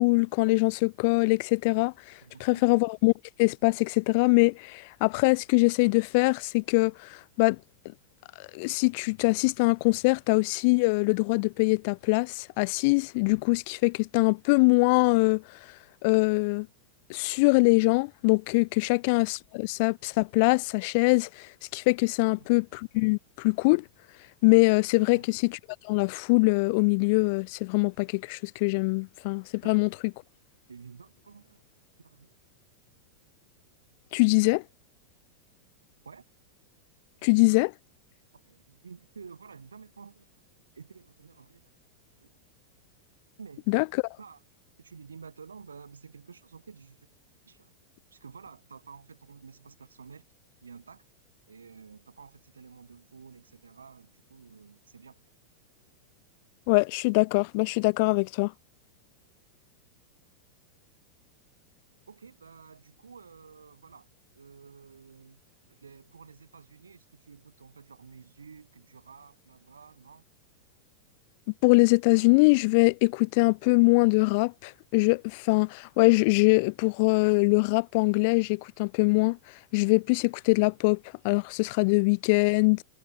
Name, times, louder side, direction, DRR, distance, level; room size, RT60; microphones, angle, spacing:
voice 1, 0.0-1.9 2.4-3.1 3.4-7.6 8.5-15.4 16.0-16.7 17.1-23.8 24.4-25.4 25.8-29.9 34.1-34.6 37.2-37.7 43.7-43.8 56.7-58.5 71.6-79.4 79.7-81.0 81.2-82.8, left 29 dB, 45° left, 0.5 m, -23 dB
voice 2, 2.2-2.8 18.8-19.0 22.2-22.5 25.0-25.3 29.6-30.1 30.7-31.6 32.0-32.4 36.0-36.3 38.3-40.4 40.7-41.7 42.2-42.4 43.4-43.7 44.2-44.4 44.8-47.1 47.4-47.7 48.1-50.2 50.6-51.0 51.5-55.2 62.1-65.4 65.7-70.2, right 5 dB, 75° right, 6.6 m, -50 dB
figure-of-eight pair, 90°, 0 cm